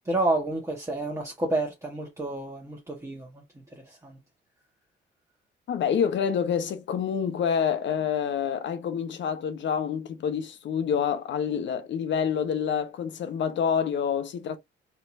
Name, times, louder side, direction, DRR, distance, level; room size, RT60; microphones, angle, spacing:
voice 1, 0.1-3.4 3.7-4.2, right 2 dB, 15° right, 1.6 m, -29 dB
voice 2, 5.7-14.6, left 7 dB, 70° left, 1.1 m, -27 dB
4.3 x 4.0 x 2.8 m
cardioid pair, 90°, 20 cm